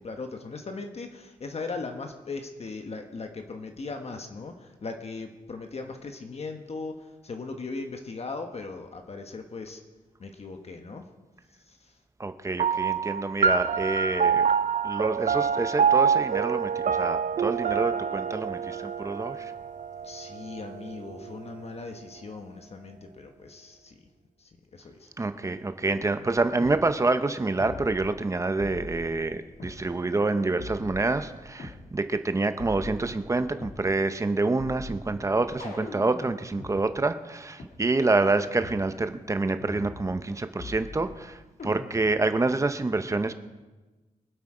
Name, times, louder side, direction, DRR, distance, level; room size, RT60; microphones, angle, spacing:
voice 1, 0.0-9.8 10.2-11.0 11.7-11.9 20.0-24.0 24.4-25.1, left 3 dB, 45° left, 5 dB, 1.1 m, -38 dB
voice 2, 12.2-14.5 14.8-19.5 25.2-43.3, right 3 dB, 20° right, 10 dB, 0.7 m, -27 dB
sound 1, 12.6-21.4, right 7 dB, 60° right, 0.5 m, -26 dB
sound 2, 26.6-26.8 27.6-28.3 28.6-29.8 30.6-31.8 32.6-33.8 34.6-36.7 37.6-37.7 38.6-38.8 39.6-40.3 40.6-41.2 41.6-42.2, left 2 dB, 75° left, 2.3 m, -41 dB
23.5 x 8.1 x 4.9 m, 1.2 s
wide cardioid pair, 155°, 14 cm